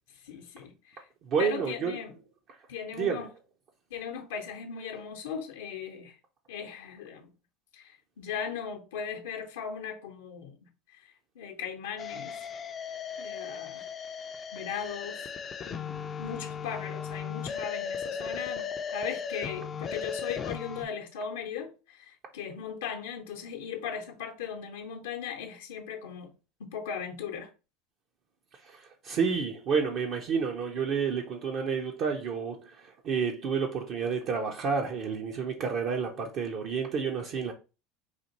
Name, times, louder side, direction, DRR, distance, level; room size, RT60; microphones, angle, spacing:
voice 1, 0.2-1.0 1.4-2.1 2.7-3.3 3.9-6.2 6.5-7.3 7.7-10.6 11.0-11.1 11.3-12.5 13.2-13.9 14.5-15.3 15.7-26.3 26.6-27.5, left 7 dB, 80° left, 0.7 m, -38 dB
voice 2, 1.2-2.0 3.0-3.3 28.5-37.5, right 6 dB, 55° right, 0.6 m, -30 dB
sound 1, 12.0-20.8, left 7 dB, 35° left, 0.4 m, -37 dB
4.2 x 2.5 x 2.9 m
hypercardioid pair, 80°, 0 cm